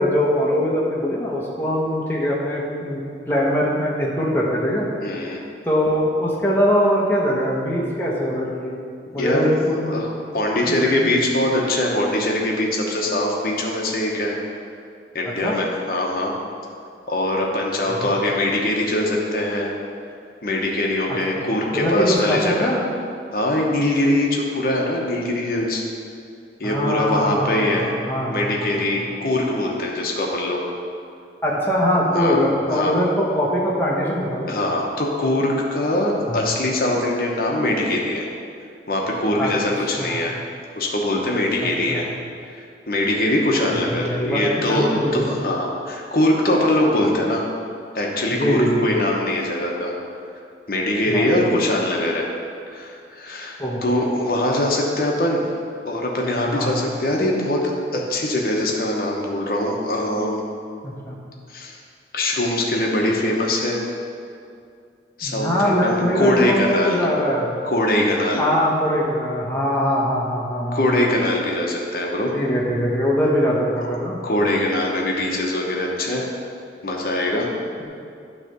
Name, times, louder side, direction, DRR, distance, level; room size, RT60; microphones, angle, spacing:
voice 1, 0.0-4.9 5.7-8.8 9.1-10.0 10.5-11.2 15.4-15.6 17.9-18.1 21.1-21.4 21.7-22.8 26.6-28.7 31.4-34.6 36.3-36.5 39.4-39.5 40.0-40.2 41.6-42.0 43.9-45.4 48.3-48.9 51.1-51.2 53.6-53.8 56.5-56.8 60.8-61.2 65.2-67.6 68.4-71.0 72.3-74.2 77.8-77.9, equal, 10° left, -5 dB, 1.0 m, -22 dB
voice 2, 5.0-5.4 9.1-14.3 15.1-16.3 17.1-19.7 20.4-22.7 23.3-25.8 26.6-27.9 28.3-30.6 32.1-32.4 32.7-32.9 34.5-38.2 38.9-40.3 40.8-42.1 42.5-47.4 47.9-49.9 50.7-52.2 52.7-55.4 55.8-60.4 61.5-61.8 62.1-63.8 65.2-67.0 67.6-68.4 70.7-72.3 74.2-76.2 76.8-77.5, left 1 dB, 50° left, -1 dB, 1.0 m, -22 dB
9.4 x 3.3 x 6.6 m, 2.4 s
head